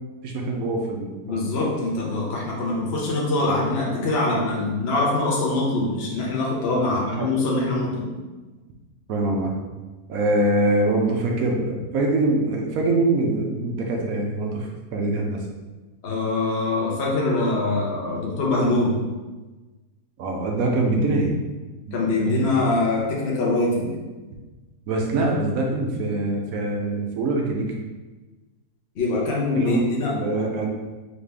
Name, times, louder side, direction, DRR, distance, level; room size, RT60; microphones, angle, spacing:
voice 1, 0.2-1.4 6.7-7.4 9.1-9.5 10.1-15.4 20.2-21.3 21.9-22.4 24.9-27.7 29.5-30.7, right 2 dB, 65° right, 0 dB, 1.0 m, -24 dB
voice 2, 1.2-8.1 16.0-19.0 21.9-23.9 29.0-30.2, left 2 dB, 45° left, -4 dB, 0.9 m, -23 dB
4.1 x 3.0 x 3.4 m, 1.2 s
omnidirectional pair, 1.7 m